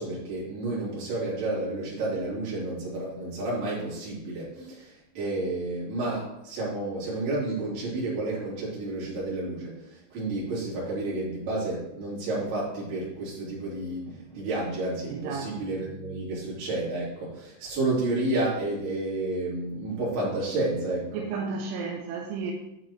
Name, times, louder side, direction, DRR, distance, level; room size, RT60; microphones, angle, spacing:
voice 1, 0.0-9.8 10.1-21.2, right 2 dB, 55° right, -7 dB, 5.2 m, -31 dB
voice 2, 15.1-15.7 21.1-22.5, right 5 dB, 75° right, 0 dB, 2.7 m, -33 dB
9.8 x 8.0 x 3.1 m, 0.92 s
omnidirectional pair, 5.6 m